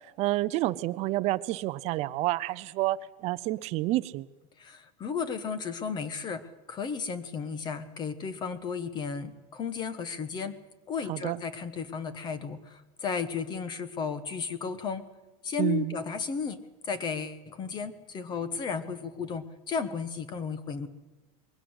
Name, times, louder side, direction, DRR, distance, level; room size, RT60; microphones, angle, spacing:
voice 1, 0.2-4.3 11.1-11.4 15.6-15.9, right 17 dB, 35° right, 0.7 m, -29 dB
voice 2, 4.6-10.6 10.9-15.0 15.4-20.9, left 5 dB, 25° left, 1.3 m, -34 dB
22.5 x 16.5 x 8.1 m
cardioid pair, 175°, 18 cm